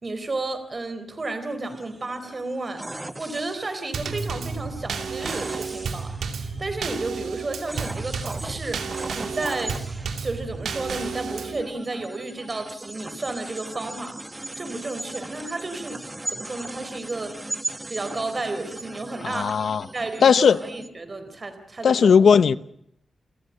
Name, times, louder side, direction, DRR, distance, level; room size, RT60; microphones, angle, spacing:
voice 1, 0.0-2.8 3.2-9.8 10.2-14.2 14.6-16.0 16.3-17.4 17.9-19.6 19.9-22.1, right 2 dB, 30° right, 4.1 m, -32 dB
sound 1, 1.7-20.9, right 1 dB, 15° right, 1.5 m, -38 dB
Drum kit / Snare drum / Bass drum, 3.9-11.6, right 5 dB, 85° right, 2.8 m, -32 dB
voice 2, 19.2-19.9 20.2-20.6 21.8-22.6, left 6 dB, 70° left, 0.9 m, -17 dB
29.5 x 14.5 x 10.0 m
wide cardioid pair, 120°, 0 cm